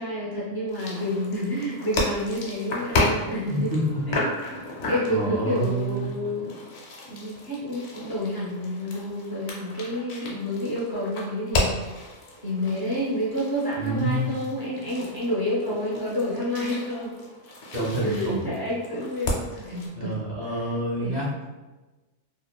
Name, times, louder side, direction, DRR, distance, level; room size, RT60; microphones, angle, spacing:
voice 1, 0.0-3.8 4.1-6.6 7.0-11.8 12.4-17.2 17.7-20.2 20.4-20.6 21.0-21.2, left 1 dB, 30° left, -7 dB, 0.4 m, -29 dB
sound 1, 0.7-19.9, left 2 dB, 75° left, 0.9 m, -33 dB
voice 2, 3.4-4.2 5.1-6.1 13.8-14.4 17.7-18.5 20.0-21.5, right 1 dB, 45° right, -6 dB, 0.7 m, -27 dB
2.9 x 2.1 x 2.2 m, 1.2 s
omnidirectional pair, 1.2 m